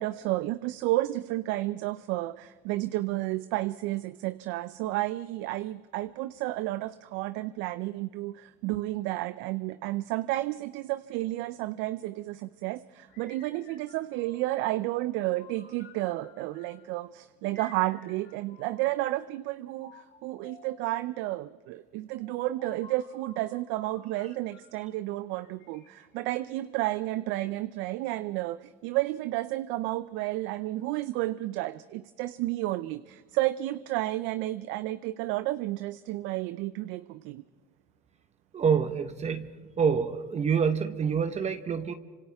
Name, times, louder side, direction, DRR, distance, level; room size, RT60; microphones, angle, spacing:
voice 1, 0.0-37.4, right 17 dB, 65° right, 15 dB, 0.6 m, -31 dB
sound 1, 13.1-14.7 15.3-16.9 17.5-19.1 19.8-21.0 22.1-24.9 25.3-27.1, left 5 dB, 55° left, 4.1 m, -55 dB
voice 2, 38.5-39.5 39.8-41.9, right 6 dB, 35° right, 9 dB, 1.1 m, -26 dB
28.0 x 26.0 x 3.6 m, 1.5 s
supercardioid pair, 90°, 21 cm